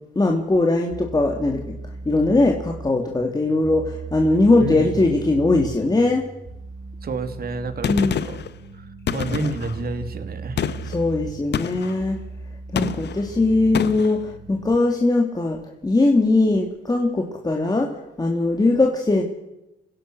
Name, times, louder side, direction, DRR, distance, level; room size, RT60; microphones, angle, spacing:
voice 1, 0.1-1.8 2.0-6.2 7.9-8.2 10.9-12.2 12.7-15.6 15.8-17.9 18.2-19.2, left 2 dB, 20° left, 1 dB, 2.9 m, -20 dB
sound 1, 0.9-14.8, right 4 dB, 25° right, 2.0 m, -37 dB
voice 2, 4.6-5.0 7.0-8.4 8.7-10.8, right 3 dB, 50° right, 8 dB, 2.9 m, -30 dB
Gunshot gunfire, 7.8-8.5 9.1-9.8 10.6-11.0 11.5-12.0 12.8-13.2 13.7-14.2, left 9 dB, 60° left, 1.2 m, -27 dB
26.5 x 16.5 x 6.3 m, 0.91 s
cardioid pair, 90°, 20 cm